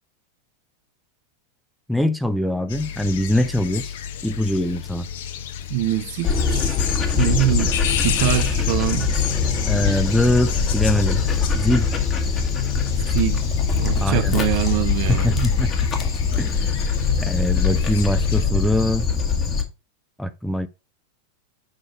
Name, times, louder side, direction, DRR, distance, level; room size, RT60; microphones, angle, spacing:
voice 1, 1.9-4.0 4.2-5.1 9.7-11.2 11.6-11.9 14.0-14.4 15.1-15.9 16.4-16.8 17.2-19.1 20.2-20.7, left 1 dB, ahead, 0.5 m, -22 dB
sound 1, 2.7-18.4, left 9 dB, 55° left, 0.9 m, -32 dB
voice 2, 5.7-6.8 7.2-7.7 8.0-9.1 13.1-13.4 13.8-15.5, right 15 dB, 45° right, 0.6 m, -23 dB
Dog, 6.2-19.6, left 5 dB, 25° left, 1.4 m, -22 dB
6.6 x 5.0 x 4.8 m
figure-of-eight pair, 90°, 0 cm